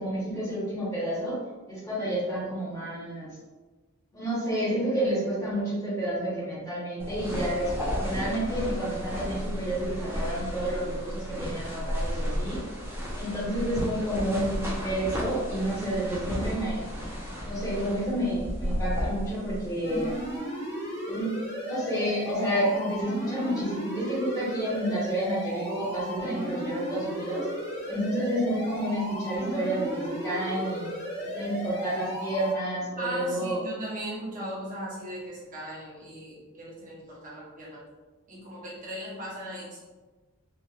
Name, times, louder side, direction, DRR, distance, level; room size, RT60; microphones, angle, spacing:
voice 1, 0.0-3.3 4.1-7.7 8.0-12.6 13.1-16.8 17.4-20.1 21.1-27.5 27.9-30.9 31.2-33.6, right 1 dB, 15° left, -8 dB, 1.0 m, -30 dB
sound 1, 7.0-20.4, equal, 10° right, 0.6 m, -33 dB
sound 2, 19.8-32.5, equal, 50° left, 1.5 m, -35 dB
voice 2, 33.0-37.8 38.3-39.8, right 1 dB, 35° right, -6 dB, 0.9 m, -38 dB
3.0 x 2.4 x 2.4 m, 1.2 s
head